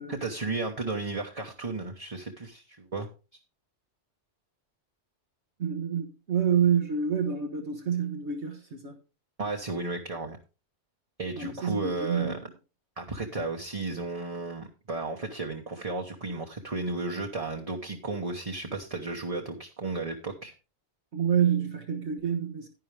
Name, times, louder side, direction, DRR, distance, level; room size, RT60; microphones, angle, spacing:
voice 1, 0.1-3.1 9.4-10.4 11.2-12.4 13.0-20.5, right 3 dB, 30° right, 1.2 m, -34 dB
voice 2, 5.6-9.0 11.4-12.4 21.1-22.7, right 8 dB, 70° right, 1.5 m, -28 dB
10.5 x 10.5 x 3.3 m
omnidirectional pair, 1.2 m